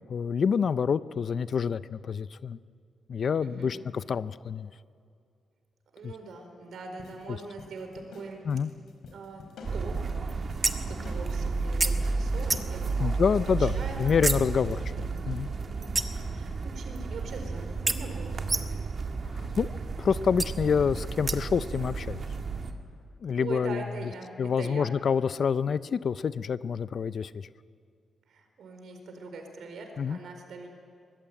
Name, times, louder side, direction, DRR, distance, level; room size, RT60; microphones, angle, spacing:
voice 1, 0.1-2.6 3.1-4.7 6.0-6.1 8.5-8.7 13.0-14.8 15.3-15.5 19.3-22.2 23.2-23.8 24.4-27.5 30.0-30.2, left 6 dB, 50° left, 15 dB, 0.5 m, -27 dB
voice 2, 3.4-3.9 5.9-8.6 9.1-10.1 10.4-13.2 13.6-14.4 14.8-15.3 15.8-18.7 23.4-24.9 28.3-30.7, right 3 dB, 70° right, 4 dB, 4.4 m, -42 dB
sound 1, 7.0-12.8, left 3 dB, 80° left, 4.8 m, -48 dB
sound 2, 9.6-22.7, right 4 dB, 40° right, 1.8 m, -32 dB
sound 3, 10.6-11.0 11.8-11.9 12.5-12.8 14.2-14.5 16.0-16.3 17.9-18.0 18.5-18.9 20.4-20.5 21.3-21.6, right 3 dB, 20° right, 1.2 m, -29 dB
24.0 x 21.0 x 8.8 m, 2.3 s
wide cardioid pair, 145°, 0 cm